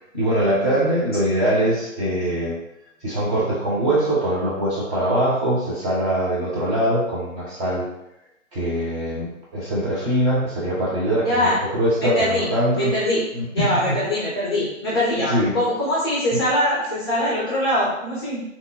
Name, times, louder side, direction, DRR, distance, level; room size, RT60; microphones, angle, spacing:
voice 1, 0.1-2.6 3.0-7.9 8.5-12.9 13.3-14.0 15.3-15.6 16.3-16.4, right 1 dB, 20° right, -7 dB, 1.0 m, -22 dB
voice 2, 11.2-11.6 12.0-12.5 12.7-13.2 13.5-18.4, left 1 dB, 20° left, -7 dB, 0.6 m, -22 dB
3.0 x 2.1 x 3.7 m, 0.86 s
figure-of-eight pair, 135°, 39 cm